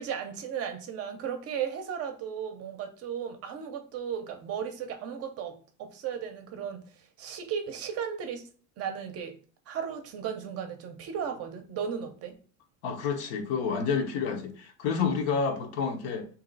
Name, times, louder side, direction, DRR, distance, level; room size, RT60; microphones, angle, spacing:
voice 1, 0.0-8.4 8.8-9.4 9.7-12.4, right 8 dB, 40° right, 0.5 m, -35 dB
voice 2, 12.8-16.3, left 5 dB, 80° left, 0.9 m, -29 dB
3.0 x 2.7 x 3.9 m
cardioid pair, 160°, 38 cm